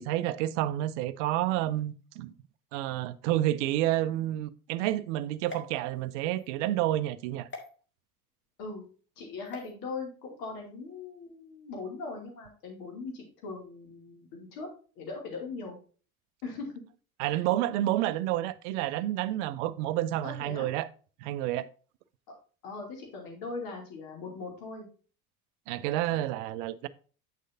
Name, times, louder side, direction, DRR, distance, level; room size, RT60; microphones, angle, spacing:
voice 1, 0.0-2.3 2.7-7.5 17.2-20.9 21.2-21.7 25.7-26.9, right 14 dB, 55° right, 0.6 m, -29 dB
sound 1, 5.4-6.5 7.5-7.7 9.4-9.7, left 2 dB, 25° left, 1.9 m, -45 dB
voice 2, 9.2-14.7 15.0-15.7 16.4-16.8 17.3-17.4 20.2-20.7 22.3-22.4 22.6-24.9, left 4 dB, 55° left, 2.6 m, -40 dB
8.2 x 6.3 x 2.6 m
figure-of-eight pair, 65°, 43 cm